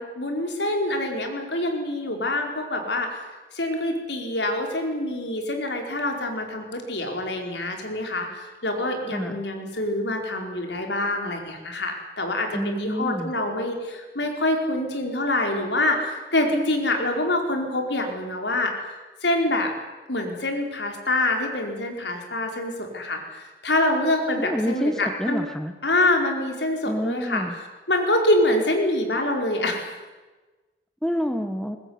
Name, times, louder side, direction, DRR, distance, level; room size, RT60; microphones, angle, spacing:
voice 1, 0.0-3.2 3.5-18.7 19.2-19.7 20.1-25.4 25.8-27.4 27.9-29.9, left 1 dB, 80° left, 3 dB, 4.7 m, -25 dB
voice 2, 9.1-9.4 12.5-13.3 24.4-25.7 26.8-27.6 31.0-31.8, equal, 5° left, 7 dB, 1.3 m, -28 dB
21.5 x 20.0 x 9.7 m, 1.2 s
head